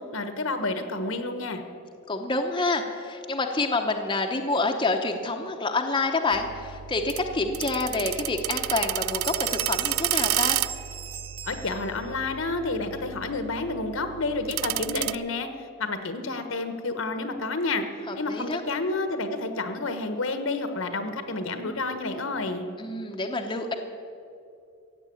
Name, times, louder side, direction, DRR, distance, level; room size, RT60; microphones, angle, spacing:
voice 1, 0.1-1.6 11.5-15.5 15.8-17.8 18.2-22.7, left 3 dB, 75° left, 8 dB, 1.3 m, -30 dB
voice 2, 2.1-10.6 18.1-18.6 22.8-23.7, left 3 dB, 25° left, 3 dB, 0.9 m, -27 dB
sound 1, 6.3-15.2, right 15 dB, 80° right, 0.3 m, -31 dB
Bell, 9.1-12.3, right 7 dB, 25° right, 0.5 m, -39 dB
15.0 x 8.5 x 8.5 m, 2.5 s
head